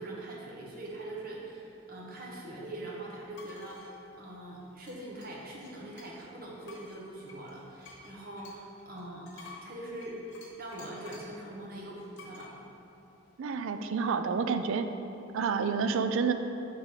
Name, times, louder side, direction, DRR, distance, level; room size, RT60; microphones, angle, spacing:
voice 1, 0.0-3.9 4.2-10.2 10.6-12.5, right 1 dB, 45° right, -3 dB, 1.0 m, -42 dB
sound 1, 3.4-3.9 4.9-6.3 6.6-11.4 12.2-12.5, left 4 dB, 60° left, 1.2 m, -52 dB
voice 2, 13.4-14.9 15.3-16.3, right 5 dB, 70° right, 9 dB, 0.3 m, -29 dB
7.3 x 3.8 x 4.8 m, 2.8 s
head